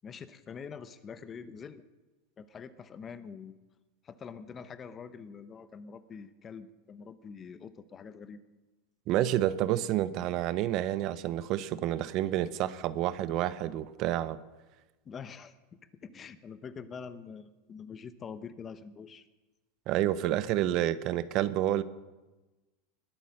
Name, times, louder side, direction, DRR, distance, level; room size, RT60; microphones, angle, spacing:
voice 1, 0.0-1.8 2.4-3.6 4.0-8.5 15.0-15.6 16.0-19.3, left 6 dB, 25° left, 13 dB, 0.7 m, -45 dB
voice 2, 9.1-14.4 19.9-21.8, right 13 dB, 45° right, 16 dB, 0.7 m, -29 dB
20.5 x 8.3 x 6.4 m, 1.1 s
supercardioid pair, 145°, 0 cm